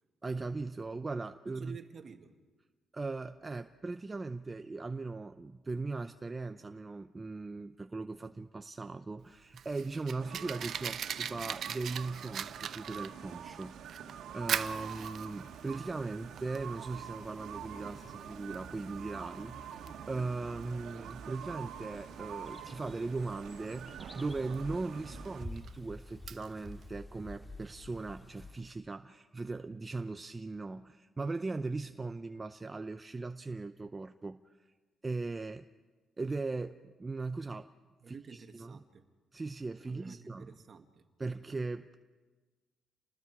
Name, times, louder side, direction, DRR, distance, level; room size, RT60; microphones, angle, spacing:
voice 1, 0.2-1.8 2.9-34.5 35.0-35.7 36.2-37.7 38.1-38.7 39.3-40.5 41.2-41.9, right 3 dB, 20° right, 8 dB, 0.6 m, -39 dB
voice 2, 1.5-2.4 38.0-39.0 39.8-41.1, right 6 dB, 45° right, 5 dB, 1.9 m, -50 dB
Fire, 9.2-26.9, right 8 dB, 60° right, 0.8 m, -42 dB
sound 1, 10.2-25.5, right 8 dB, 80° right, 1.8 m, -46 dB
sound 2, 21.6-28.6, left 1 dB, 10° left, 2.9 m, -49 dB
29.5 x 20.0 x 4.8 m, 1.3 s
cardioid pair, 110°, 0 cm